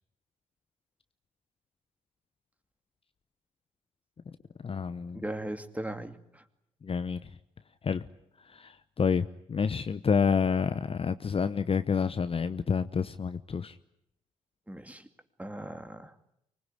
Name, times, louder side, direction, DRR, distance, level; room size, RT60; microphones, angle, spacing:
voice 1, 4.6-5.2 6.8-7.3 7.8-8.1 8.5-13.8, left 6 dB, 35° left, 12 dB, 0.9 m, -29 dB
voice 2, 5.1-6.4 14.7-15.1 15.4-16.1, right 1 dB, 10° right, 8 dB, 2.5 m, -38 dB
24.5 x 20.5 x 9.9 m, 0.79 s
hypercardioid pair, 45°, 17 cm